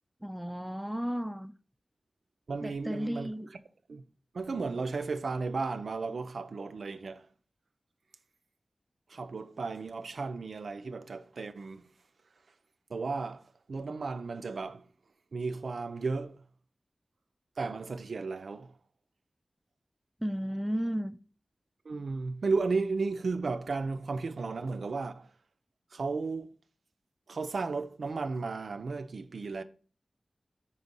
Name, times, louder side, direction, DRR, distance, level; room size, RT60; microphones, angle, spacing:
voice 1, 0.2-1.5 2.6-3.5 20.2-21.2, equal, 5° right, 0.3 m, -33 dB
voice 2, 2.5-3.3 3.9-4.0 4.3-7.3 9.1-11.9 12.9-14.9 15.3-16.4 17.6-18.7 21.8-25.3 25.9-26.6 27.3-29.6, right 4 dB, 85° right, 0.4 m, -34 dB
5.2 x 4.1 x 5.2 m
wide cardioid pair, 85°, 0 cm